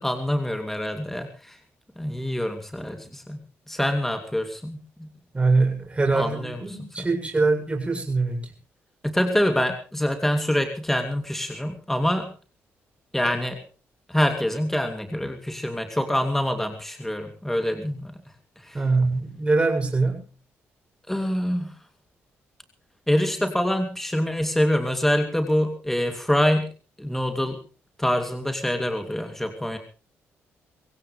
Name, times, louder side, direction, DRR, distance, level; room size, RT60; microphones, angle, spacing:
voice 1, 0.0-1.6 2.0-3.4 3.7-5.1 6.1-6.6 7.0-7.1 9.0-12.3 13.1-13.6 14.1-18.1 18.6-18.8 21.1-21.7 23.1-26.7 27.0-27.6 28.0-29.8, equal, 5° left, 6 dB, 2.8 m, -25 dB
voice 2, 5.3-8.5 18.7-20.2, right 3 dB, 20° right, 2 dB, 7.7 m, -23 dB
24.5 x 16.5 x 3.3 m, 0.36 s
cardioid pair, 75°, 5 cm